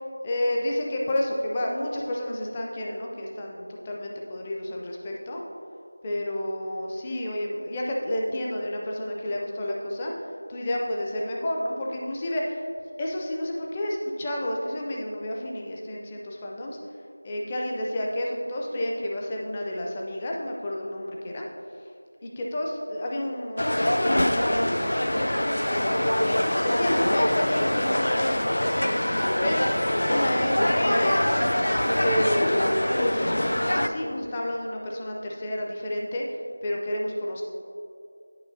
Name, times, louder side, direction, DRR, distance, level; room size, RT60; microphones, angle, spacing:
voice 1, 0.2-5.4 6.0-10.1 10.5-12.6 13.0-16.8 17.2-21.5 22.2-26.3 26.6-31.5 32.0-36.4 36.6-37.4, left 1 dB, 15° left, -2 dB, 0.4 m, -30 dB
sound 1, 23.6-33.9, left 1 dB, 75° left, 0.4 m, -24 dB
9.7 x 5.2 x 2.7 m, 2.5 s
figure-of-eight pair, 175°, 0 cm